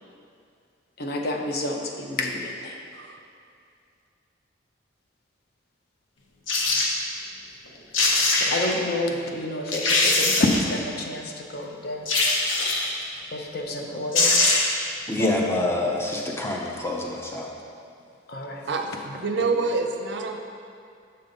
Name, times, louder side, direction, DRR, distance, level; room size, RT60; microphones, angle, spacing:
voice 1, 1.0-2.8 7.9-12.1 13.3-14.3 15.2-15.3 18.3-18.6, left 2 dB, 50° left, 1 dB, 0.6 m, -29 dB
sound 1, 6.5-6.9 7.7-7.8 7.9-8.7 9.3-9.4 9.7-10.7 12.1-13.0 13.8-13.9 14.1-14.8 15.2-15.3, left 2 dB, 75° left, 0.8 m, -22 dB
voice 2, 15.1-17.5, left 2 dB, 10° left, -1 dB, 0.5 m, -26 dB
voice 3, 18.7-20.4, right 3 dB, 60° right, 4 dB, 0.5 m, -27 dB
6.7 x 5.2 x 3.9 m, 2.4 s
head